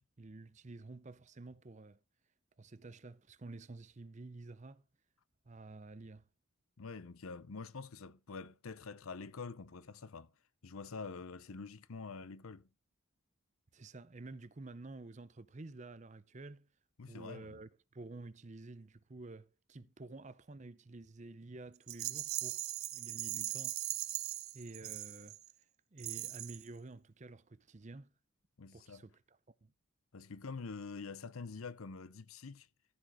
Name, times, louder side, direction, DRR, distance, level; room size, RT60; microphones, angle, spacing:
voice 1, 0.2-2.0 2.6-4.8 5.4-6.2 13.7-16.7 17.1-23.8 24.5-25.4 25.9-28.1 28.7-29.7, right 2 dB, 35° right, 0.6 m, -50 dB
voice 2, 6.8-10.3 10.6-12.7 17.0-17.6 28.6-29.0 30.1-32.7, left 4 dB, 80° left, 0.7 m, -46 dB
Rattle, 21.9-25.5 26.0-26.7, right 16 dB, 80° right, 0.7 m, -40 dB
14.0 x 5.0 x 4.8 m
head